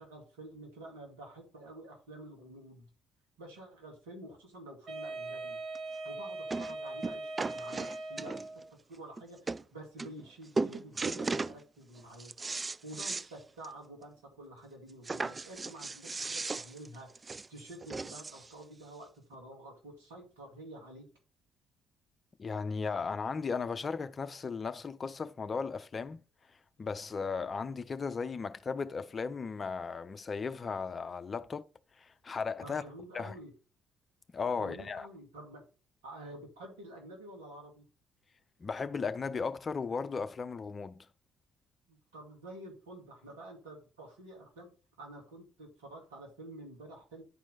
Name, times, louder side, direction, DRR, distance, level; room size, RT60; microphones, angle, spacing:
voice 1, 0.0-2.9 3.4-5.6 6.0-8.5 8.9-12.3 12.8-17.2 17.5-21.1 32.6-33.5 34.5-35.6 36.0-37.9 41.9-44.7 45.0-47.2, right 1 dB, 75° right, 2.3 m, -49 dB
Wind instrument woodwind instrument, 4.9-8.7, right 2 dB, 50° right, 2.6 m, -41 dB
sound 1, 5.8-5.9 6.5-6.7 7.0-8.6 9.2-9.3 9.5-9.6 10.0-10.3 10.6-11.6 12.0-13.3 13.6-13.7 14.1-14.2 15.0-18.5 19.3-19.4, right 3 dB, 25° right, 0.3 m, -36 dB
voice 2, 22.4-26.2 26.8-31.7 32.0-32.8 33.1-33.3 34.3-35.1 38.6-41.1, left 5 dB, 35° left, 0.6 m, -36 dB
9.9 x 4.5 x 4.1 m
figure-of-eight pair, 45°, 0 cm